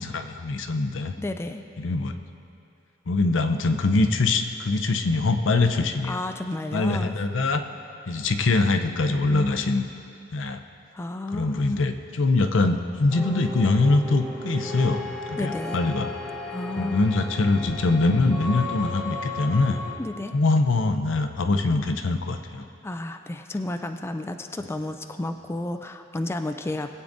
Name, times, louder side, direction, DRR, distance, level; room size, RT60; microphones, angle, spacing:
voice 1, 0.0-1.1 1.8-2.1 3.1-6.2 6.7-7.6 8.1-9.9 10.3-10.6 11.3-15.0 15.3-16.1 16.8-19.8 20.3-22.7, left 3 dB, 70° left, 7 dB, 0.6 m, -23 dB
voice 2, 1.2-1.6 6.1-7.2 9.1-9.7 10.9-11.8 15.4-15.8 16.5-17.0 20.0-20.4 22.8-26.9, left 2 dB, 15° left, 6 dB, 0.3 m, -32 dB
sound 1, 13.1-20.0, left 2 dB, 5° right, 1.6 m, -35 dB
21.0 x 8.5 x 2.6 m, 2.6 s
head